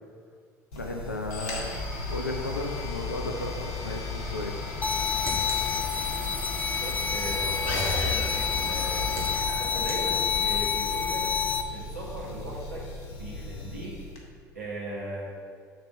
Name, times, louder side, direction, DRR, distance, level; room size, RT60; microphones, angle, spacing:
voice 1, 0.7-4.6, left 2 dB, 85° left, 1 dB, 0.5 m, -34 dB
sound 1, 0.7-14.2, left 3 dB, 65° left, 1.3 m, -35 dB
sound 2, 4.8-11.6, left 6 dB, 15° left, 0.5 m, -28 dB
sound 3, 4.8-6.4 8.4-10.7, right 1 dB, 30° right, 1.8 m, -42 dB
voice 2, 6.8-9.1 9.6-11.3 11.7-12.9 13.1-14.0 14.6-15.3, right 1 dB, 80° right, -5 dB, 1.8 m, -37 dB
7.4 x 4.3 x 6.3 m, 2.1 s
figure-of-eight pair, 60°, 9 cm